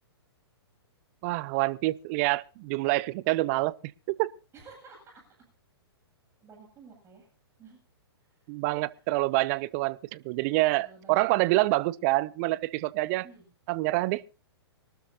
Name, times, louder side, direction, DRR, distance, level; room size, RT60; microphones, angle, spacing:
voice 1, 1.2-3.7 4.1-4.3 8.5-13.3 13.7-14.2, right 20 dB, 35° right, 0.6 m, -27 dB
voice 2, 4.5-5.2 6.4-7.3 7.6-7.8 10.8-11.7 13.1-13.5, right 4 dB, 20° right, 7.4 m, -52 dB
24.5 x 12.5 x 2.8 m
figure-of-eight pair, 120°, 14 cm